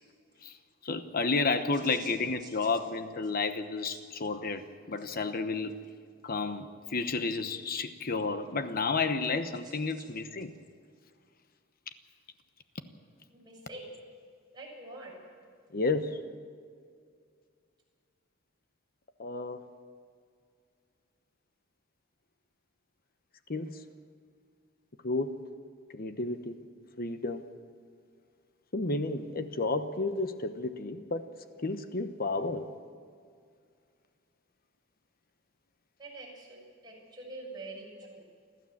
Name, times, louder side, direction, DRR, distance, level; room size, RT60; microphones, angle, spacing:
voice 1, 0.8-5.7 6.2-10.5 15.7-16.2 19.2-19.6 23.5-23.8 25.0-25.4 25.9-26.6 27.0-27.4 28.7-31.2 31.6-32.7, left 3 dB, 50° left, 9 dB, 1.0 m, -31 dB
voice 2, 1.7-2.1 2.4-2.7 3.9-4.0 9.6-10.0 13.3-14.0 14.5-15.1 36.0-38.2, right 2 dB, 20° right, -3 dB, 7.2 m, -46 dB
30.0 x 12.5 x 7.4 m, 2.2 s
head